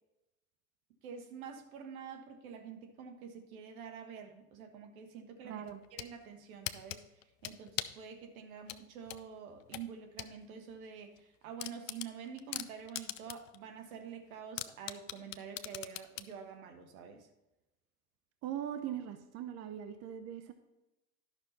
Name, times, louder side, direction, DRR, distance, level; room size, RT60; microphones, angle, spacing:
voice 1, 1.0-5.6 5.9-7.0 7.4-17.3, right 7 dB, 70° right, 5 dB, 1.5 m, -47 dB
voice 2, 5.4-5.8 18.4-20.5, right 10 dB, 35° right, 8 dB, 0.7 m, -40 dB
sound 1, 5.7-6.1 6.7-8.0 8.7-10.3 10.7-10.8 11.2-11.3 11.6-13.6 13.9-14.0 14.6-16.3, left 14 dB, 60° left, 0.7 m, -40 dB
11.5 x 6.1 x 4.1 m, 0.97 s
hypercardioid pair, 85°, 44 cm